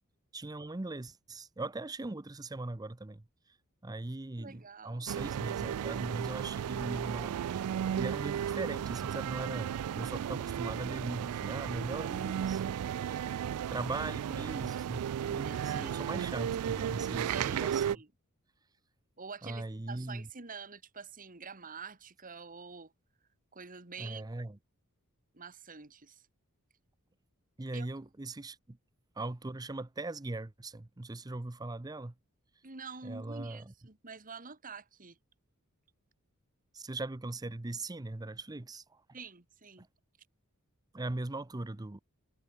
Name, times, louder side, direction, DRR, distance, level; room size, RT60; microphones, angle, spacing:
voice 1, 0.3-3.2 3.8-7.6 7.9-13.4 13.7-18.0 19.4-20.3 24.0-24.6 27.6-28.8 29.2-32.1 33.0-33.6 36.7-39.0 39.8-39.9 40.9-42.0, right 2 dB, 15° right, 0.6 m, -40 dB
voice 2, 4.4-5.1 15.4-16.2 17.0-17.6 17.9-18.1 19.2-22.9 23.5-24.3 25.3-26.2 27.7-27.9 32.6-35.2 39.1-39.9, right 5 dB, 40° right, 2.1 m, -47 dB
sound 1, 5.1-18.0, right 9 dB, 80° right, 0.3 m, -34 dB
head